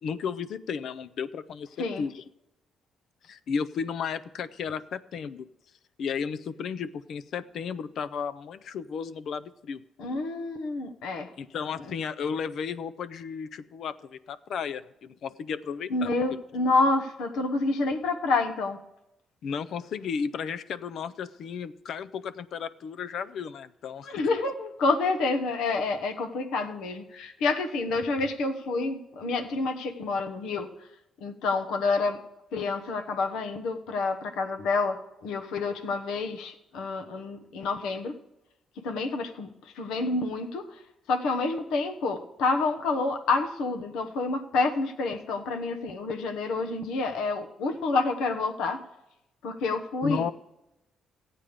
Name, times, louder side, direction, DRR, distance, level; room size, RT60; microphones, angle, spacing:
voice 1, 0.0-2.2 3.2-5.5 6.0-9.8 11.4-16.4 19.4-24.1 50.0-50.3, left 6 dB, 70° left, 13 dB, 0.5 m, -34 dB
voice 2, 10.0-11.3 11.8-11.9 15.9-18.8 24.1-30.7 31.2-32.2 32.5-38.1 38.8-40.6 41.1-48.8 49.4-50.3, left 3 dB, 85° left, 6 dB, 1.0 m, -28 dB
14.5 x 8.9 x 5.1 m, 0.92 s
cardioid pair, 90°, 0 cm